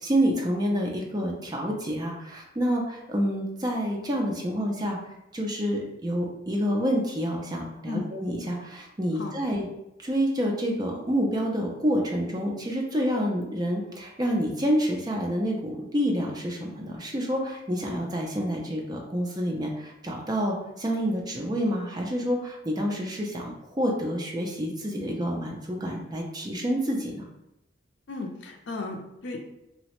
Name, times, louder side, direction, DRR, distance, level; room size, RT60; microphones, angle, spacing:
voice 1, 0.0-5.0 5.3-9.7 10.0-27.3, equal, 20° right, 0 dB, 0.4 m, -28 dB
voice 2, 28.1-29.4, left 3 dB, 70° left, 2 dB, 0.4 m, -35 dB
2.8 x 2.0 x 2.9 m, 0.88 s
head